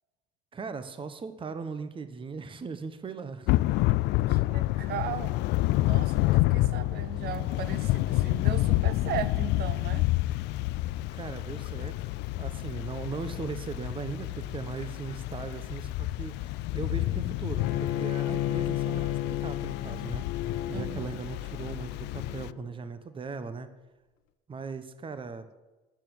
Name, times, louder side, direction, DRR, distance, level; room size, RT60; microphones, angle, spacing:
voice 1, 0.5-3.5 11.1-12.1 12.4-20.3 20.7-23.7 24.5-25.4, right 4 dB, 25° right, 10 dB, 1.2 m, -38 dB
Thunder / Rain, 3.5-22.5, left 18 dB, 65° left, 0.4 m, -29 dB
voice 2, 4.3-5.4 5.9-10.1 20.7-21.2, right 11 dB, 55° right, 14 dB, 1.1 m, -37 dB
Bowed string instrument, 17.6-22.7, left 13 dB, 80° left, 1.1 m, -33 dB
12.0 x 7.2 x 9.2 m, 1.1 s
supercardioid pair, 85°, 19 cm